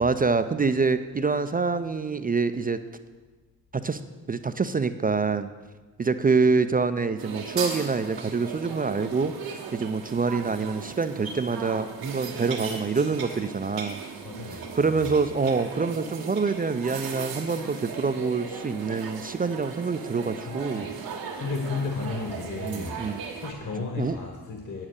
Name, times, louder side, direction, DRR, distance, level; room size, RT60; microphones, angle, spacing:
voice 1, 0.0-2.8 3.7-4.0 4.3-5.5 6.0-14.0 14.5-20.9 22.6-23.2 24.0-24.2, right 4 dB, 20° right, 10 dB, 0.4 m, -26 dB
sound 1, 7.2-23.5, right 5 dB, 90° right, 1.4 m, -37 dB
voice 2, 14.2-15.0 20.4-20.9 21.4-23.0 23.4-24.9, left 4 dB, 40° left, 2 dB, 1.4 m, -33 dB
8.6 x 7.4 x 6.5 m, 1.3 s
hypercardioid pair, 45°, 47 cm